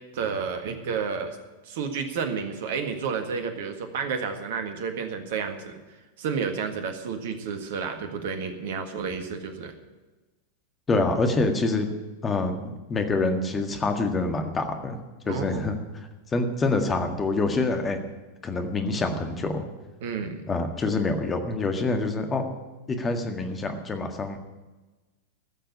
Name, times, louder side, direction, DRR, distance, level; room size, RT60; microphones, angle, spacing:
voice 1, 0.1-1.4 1.6-5.8 6.2-9.7 15.2-15.6 20.0-20.5, right 6 dB, 55° right, 6 dB, 1.7 m, -31 dB
voice 2, 10.9-11.9 12.2-15.0 15.3-15.8 16.3-18.0 18.4-19.6 20.5-22.4 22.9-24.4, left 3 dB, 20° left, 5 dB, 1.8 m, -26 dB
15.0 x 6.8 x 9.9 m, 1.2 s
figure-of-eight pair, 90°, 0 cm